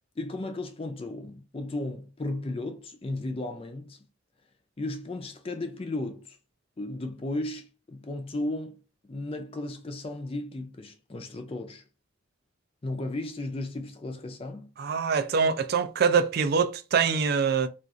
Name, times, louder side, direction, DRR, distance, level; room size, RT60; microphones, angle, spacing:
voice 1, 0.2-4.0 4.8-6.4 6.8-8.8 9.1-11.8 12.8-14.7, left 2 dB, 25° left, 0.4 m, -35 dB
voice 2, 14.8-17.7, right 6 dB, 50° right, 0.3 m, -24 dB
2.4 x 2.4 x 3.7 m
head